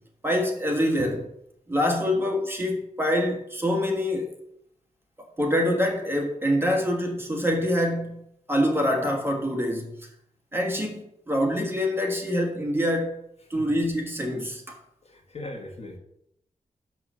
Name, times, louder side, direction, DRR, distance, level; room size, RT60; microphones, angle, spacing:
voice 1, 0.2-1.3 1.7-4.3 5.4-8.2 8.5-10.1 10.5-13.2 13.5-14.8, equal, 15° right, 1.5 m, -25 dB
voice 2, 15.0-16.0, left 2 dB, 50° left, 1.6 m, -39 dB
6.3 x 5.9 x 6.2 m
wide cardioid pair, 135°, 14 cm